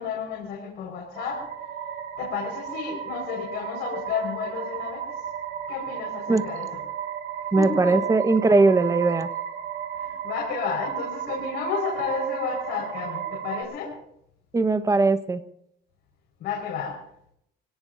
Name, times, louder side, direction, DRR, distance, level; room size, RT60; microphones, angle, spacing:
voice 1, 0.0-1.4 2.2-5.1 5.7-6.7 7.5-8.0 9.9-13.9 16.4-17.0, left 6 dB, 75° left, -2 dB, 4.9 m, -31 dB
sound 1, 1.1-13.6, right 9 dB, 80° right, 4.2 m, -34 dB
voice 2, 7.5-9.3 14.5-15.4, right 3 dB, 20° right, 10 dB, 1.2 m, -20 dB
26.0 x 18.0 x 2.7 m, 0.72 s
cardioid pair, 110°, 17 cm